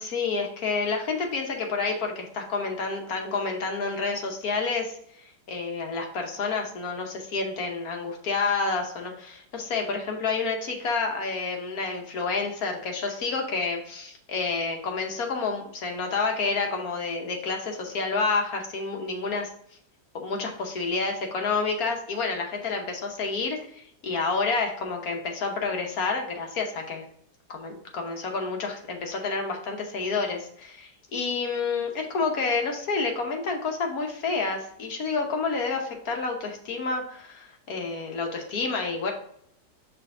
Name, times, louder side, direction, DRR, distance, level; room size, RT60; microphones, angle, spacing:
voice 1, 0.0-19.5 20.1-27.0 27.5-39.1, left 4 dB, 60° left, 2 dB, 1.4 m, -29 dB
5.6 x 3.5 x 4.8 m, 0.66 s
omnidirectional pair, 1.9 m